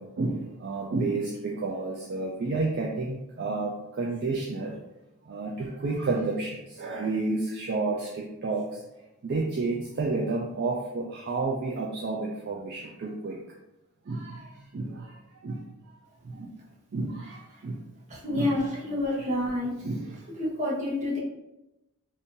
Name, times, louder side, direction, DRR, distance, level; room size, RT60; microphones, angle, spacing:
voice 1, 0.0-4.7 5.3-8.8 9.2-13.4 14.1-15.2 15.4-15.6 16.2-16.5 16.9-17.8 18.3-18.7 19.8-20.2, right 3 dB, 50° right, -2 dB, 0.4 m, -31 dB
voice 2, 18.1-19.7 20.4-21.2, left 1 dB, 30° right, -5 dB, 0.9 m, -28 dB
2.6 x 2.6 x 3.7 m, 0.95 s
head